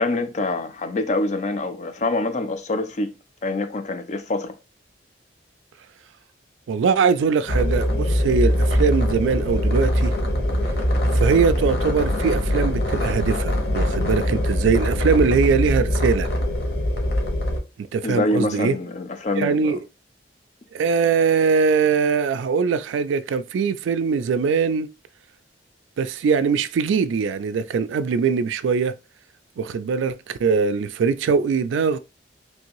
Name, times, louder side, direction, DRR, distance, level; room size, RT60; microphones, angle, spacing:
voice 1, 0.0-3.1 3.4-4.5 18.0-19.8, left 2 dB, 40° left, 0.4 m, -25 dB
voice 2, 6.7-10.1 11.1-16.3 17.8-18.7 19.4-19.8 20.7-24.9 26.0-28.9 29.6-32.0, right 5 dB, 85° right, 0.3 m, -21 dB
sound 1, 7.5-17.6, equal, 60° left, 0.9 m, -22 dB
3.2 x 2.6 x 2.9 m
head